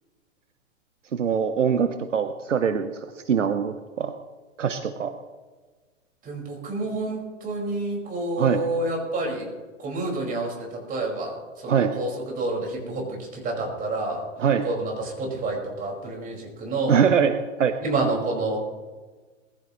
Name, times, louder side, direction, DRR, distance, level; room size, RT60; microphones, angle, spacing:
voice 1, 1.1-4.1 4.6-5.1 8.4-8.6 11.7-11.9 14.4-14.7 16.9-17.7, right 7 dB, 70° right, 9 dB, 1.1 m, -23 dB
voice 2, 6.3-9.5 9.8-11.4 11.6-13.1 13.3-14.2 14.6-17.0 17.8-18.6, right 2 dB, 20° right, -1 dB, 5.3 m, -28 dB
21.0 x 15.5 x 3.1 m, 1.3 s
figure-of-eight pair, 110°, 38 cm